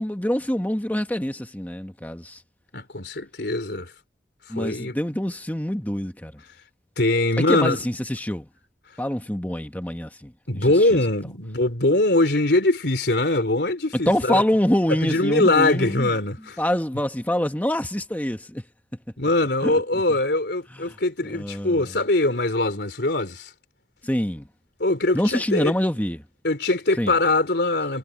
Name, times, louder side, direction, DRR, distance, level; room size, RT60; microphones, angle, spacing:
voice 1, 0.0-2.4 4.5-6.3 7.4-8.5 9.0-10.6 10.9-11.0 14.1-16.1 16.6-18.6 19.6-19.8 20.9-21.0 21.3-21.8 24.0-24.5 25.1-26.2 27.0-27.1, equal, 10° left, 1.3 m, -25 dB
voice 2, 2.7-3.9 4.6-5.0 7.0-7.8 10.5-14.4 14.9-16.6 19.2-23.5 24.8-25.8 26.4-28.0, left 2 dB, 70° left, 3.6 m, -22 dB
head